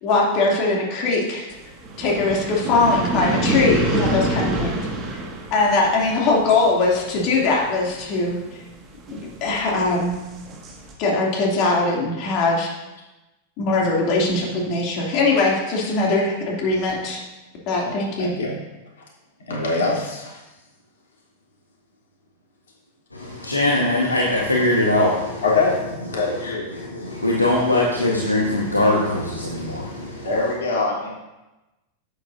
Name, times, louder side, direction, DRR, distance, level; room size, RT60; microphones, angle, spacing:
voice 1, 0.0-1.5 2.0-4.8 5.1-5.2 5.5-8.4 9.1-10.1 11.0-12.7 13.6-17.2 17.7-18.3, left 3 dB, 40° left, -2 dB, 2.7 m, -21 dB
sound 1, 1.5-10.9, right 1 dB, 30° right, 1.9 m, -27 dB
voice 2, 18.2-18.5 19.5-20.3 25.4-25.8 26.1-26.8 30.2-31.1, left 3 dB, 65° left, -4 dB, 3.3 m, -23 dB
voice 3, 23.1-25.5 26.1-30.5, left 1 dB, 80° left, -3 dB, 1.4 m, -22 dB
11.5 x 8.8 x 2.7 m, 1.0 s
figure-of-eight pair, 90°, 0 cm